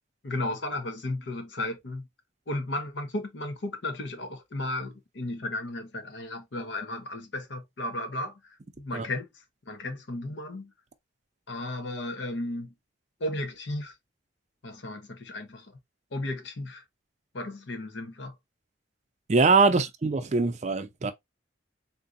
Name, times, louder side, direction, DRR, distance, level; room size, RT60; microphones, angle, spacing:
voice 1, 0.2-2.1 2.5-8.4 8.8-9.3 9.7-10.7 11.5-12.7 13.2-13.9 14.6-15.7 16.1-16.8 17.3-18.3 19.7-19.8, left 1 dB, 70° left, 0.8 m, -34 dB
voice 2, 19.3-21.1, right 4 dB, 35° right, 0.5 m, -23 dB
3.7 x 2.7 x 2.4 m
head